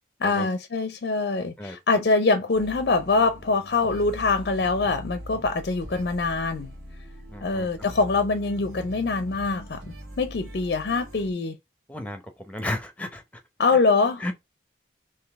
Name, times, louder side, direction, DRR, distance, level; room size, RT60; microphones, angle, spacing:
voice 1, 0.2-6.7 7.4-11.6 13.6-14.3, left 3 dB, 55° left, 0.4 m, -24 dB
sound 1, 2.5-11.3, equal, 65° right, 1.4 m, -42 dB
voice 2, 7.3-7.7 11.9-12.2 12.5-13.2 14.2-14.3, left 1 dB, 5° left, 0.7 m, -32 dB
3.9 x 2.7 x 3.4 m
head